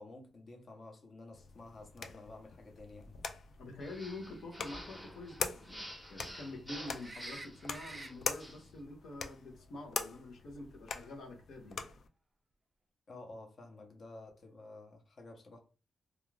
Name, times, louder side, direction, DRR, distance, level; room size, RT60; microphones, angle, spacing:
voice 1, 0.0-3.2 13.1-15.6, left 2 dB, 45° left, 0.8 m, -51 dB
sound 1, 1.3-12.1, left 5 dB, 65° left, 0.4 m, -44 dB
voice 2, 3.6-11.8, left 2 dB, 80° left, 0.7 m, -47 dB
sound 2, 3.8-8.7, equal, ahead, 0.8 m, -50 dB
sound 3, 7.0-8.1 11.0-11.1, right 2 dB, 25° right, 0.3 m, -48 dB
2.4 x 2.3 x 3.1 m
wide cardioid pair, 130°, 0 cm